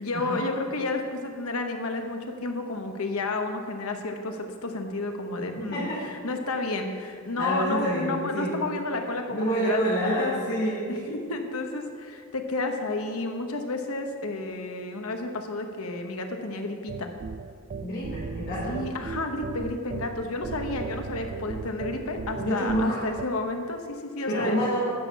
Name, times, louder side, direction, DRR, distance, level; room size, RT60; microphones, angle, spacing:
voice 1, 0.0-17.1 18.7-24.6, left 2 dB, 75° left, 4 dB, 1.1 m, -31 dB
voice 2, 5.5-6.0 7.4-8.6 9.3-11.2 17.8-18.8 22.4-23.0 24.3-24.9, equal, 50° left, -10 dB, 3.3 m, -28 dB
sound 1, 16.9-23.2, right 5 dB, 35° right, 0.3 m, -37 dB
9.6 x 6.4 x 7.1 m, 2.1 s
head